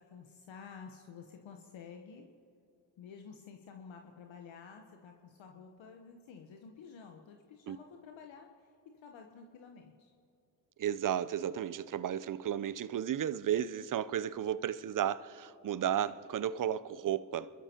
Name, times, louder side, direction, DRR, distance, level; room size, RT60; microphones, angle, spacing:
voice 1, 0.0-2.3 3.0-10.1, left 6 dB, 65° left, 1.2 m, -51 dB
voice 2, 10.8-17.5, right 10 dB, 40° right, 0.7 m, -33 dB
27.0 x 13.0 x 3.0 m
hypercardioid pair, 40°, 49 cm